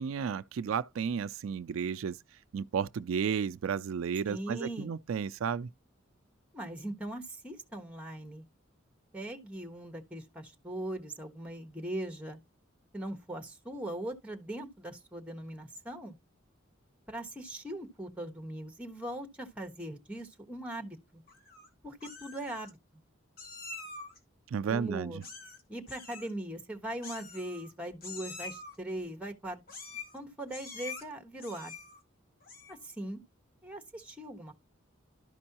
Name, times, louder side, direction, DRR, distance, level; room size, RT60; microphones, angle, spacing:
voice 1, 0.0-2.2 2.5-5.7 24.5-25.2, right 6 dB, 85° right, 0.4 m, -33 dB
voice 2, 4.2-5.0 6.5-8.4 9.1-12.4 12.9-16.2 17.1-21.2 21.8-22.8 24.7-25.2 25.7-29.6 30.1-31.7 32.7-33.2 33.6-34.5, right 1 dB, 5° right, 1.2 m, -40 dB
Meow, 21.3-21.7 22.0-22.7 23.4-24.2 25.2-25.6 25.9-26.3 27.0-27.7 28.0-28.8 29.7-30.2 30.5-31.0 31.4-32.0 32.4-32.8, left 4 dB, 45° left, 2.1 m, -45 dB
12.5 x 5.3 x 2.9 m
head